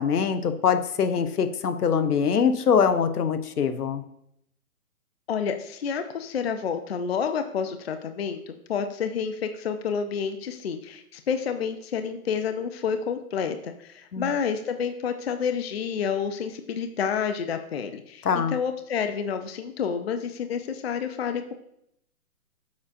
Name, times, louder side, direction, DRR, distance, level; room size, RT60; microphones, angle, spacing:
voice 1, 0.0-4.0 14.1-14.3 18.2-18.5, left 6 dB, 80° left, 10 dB, 0.8 m, -23 dB
voice 2, 5.3-21.5, left 6 dB, 45° left, 8 dB, 0.5 m, -29 dB
7.1 x 6.2 x 2.5 m, 0.74 s
hypercardioid pair, 155°, 45 cm